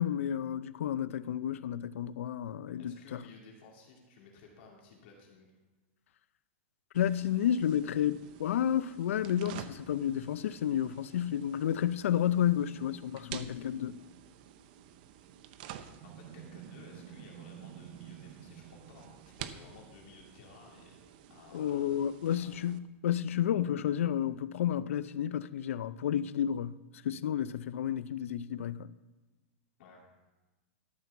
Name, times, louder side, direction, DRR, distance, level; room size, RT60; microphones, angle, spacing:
voice 1, 0.0-3.2 6.9-14.0 21.5-26.8 27.0-28.9, left 10 dB, 85° left, 0.5 m, -31 dB
voice 2, 2.8-5.5 11.2-11.3 16.0-21.0 21.3-22.0 22.3-22.6 29.8-30.1, left 4 dB, 50° left, 2.5 m, -56 dB
sound 1, 6.9-22.8, right 10 dB, 45° right, 0.7 m, -49 dB
12.5 x 6.0 x 7.0 m
supercardioid pair, 170°, 7 cm